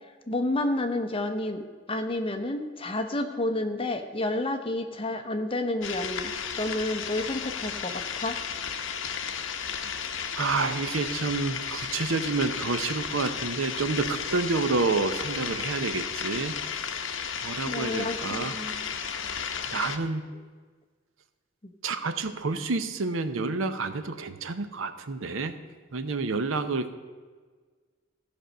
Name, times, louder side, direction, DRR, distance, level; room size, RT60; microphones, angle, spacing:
voice 1, 0.3-1.6 1.9-6.3 6.6-8.4 17.7-18.9, left 1 dB, 30° left, 6 dB, 0.9 m, -30 dB
sound 1, 5.8-20.0, left 7 dB, 70° left, 0.8 m, -34 dB
voice 2, 10.3-16.8 17.4-18.5 19.7-20.3 21.8-25.5 25.9-26.9, right 3 dB, 85° right, 10 dB, 0.7 m, -29 dB
15.0 x 5.3 x 6.5 m, 1.5 s
head